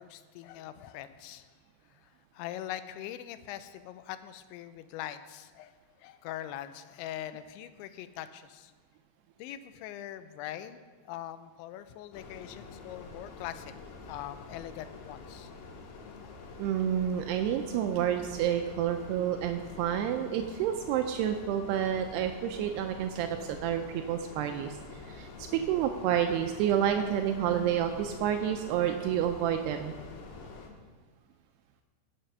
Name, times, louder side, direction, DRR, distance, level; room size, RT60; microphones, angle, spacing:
voice 1, 0.0-1.5 2.3-5.7 6.0-8.7 9.4-10.8 11.1-13.7 14.1-15.5 16.2-16.3, left 12 dB, 80° left, 11 dB, 2.9 m, -42 dB
sound 1, 12.1-30.7, left 4 dB, 65° left, 3.0 m, -47 dB
voice 2, 16.6-24.8 25.0-29.9, right 10 dB, 85° right, 6 dB, 2.3 m, -29 dB
17.0 x 7.4 x 5.6 m, 1.5 s
omnidirectional pair, 5.4 m